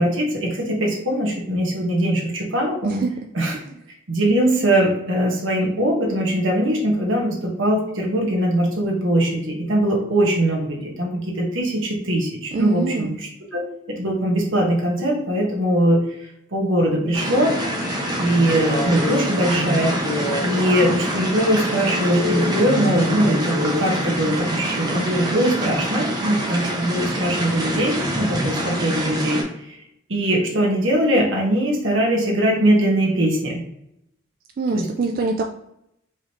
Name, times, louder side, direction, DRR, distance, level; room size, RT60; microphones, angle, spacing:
voice 1, 0.0-3.0 3.3-3.6 4.1-13.6 14.0-16.0 16.5-17.5 18.2-19.9 20.4-29.4 29.7-29.8 30.1-33.5 34.7-34.8, right 1 dB, 75° right, -1 dB, 1.2 m, -21 dB
voice 2, 12.5-13.2 34.6-35.4, right 4 dB, 45° right, 3 dB, 0.3 m, -24 dB
sound 1, 17.1-29.4, right 1 dB, 20° right, 0.8 m, -26 dB
sound 2, 17.2-23.9, left 2 dB, 35° left, 0.8 m, -29 dB
4.8 x 3.1 x 2.9 m, 0.80 s
head